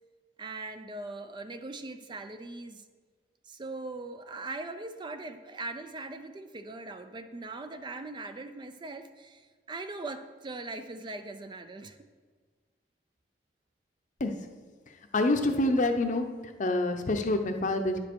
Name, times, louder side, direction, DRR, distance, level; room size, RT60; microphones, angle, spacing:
voice 1, 0.4-2.8 3.4-12.0, right 2 dB, 25° right, 9 dB, 0.4 m, -40 dB
voice 2, 15.1-16.2 16.6-18.0, left 2 dB, 45° left, 6 dB, 0.7 m, -26 dB
10.5 x 5.1 x 4.6 m, 1.5 s
head